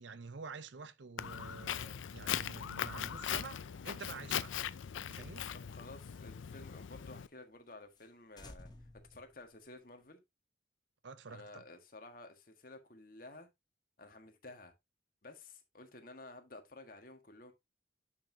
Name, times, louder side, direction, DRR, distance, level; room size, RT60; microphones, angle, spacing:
voice 1, 0.0-4.5 5.0-5.5 11.0-11.6, right 4 dB, 75° right, 0.7 m, -48 dB
Walk footsteps, 1.2-7.3, left 9 dB, 90° left, 0.5 m, -40 dB
voice 2, 5.7-10.2 11.3-13.5 14.0-14.7 15.2-17.5, left 2 dB, 50° left, 1.7 m, -53 dB
sound 1, 7.6-7.7 8.0-8.1 8.4-10.1, left 1 dB, 20° left, 1.1 m, -58 dB
10.5 x 5.7 x 2.8 m
head